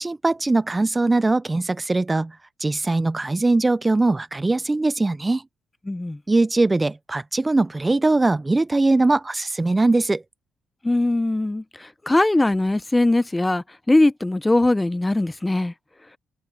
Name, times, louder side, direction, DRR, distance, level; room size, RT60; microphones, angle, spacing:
voice 1, 0.0-5.4 6.3-10.2, right 2 dB, 20° right, 0.4 m, -21 dB
voice 2, 5.9-6.2 10.8-15.7, left 2 dB, 15° left, 0.8 m, -21 dB
cardioid pair, 90°, 0 cm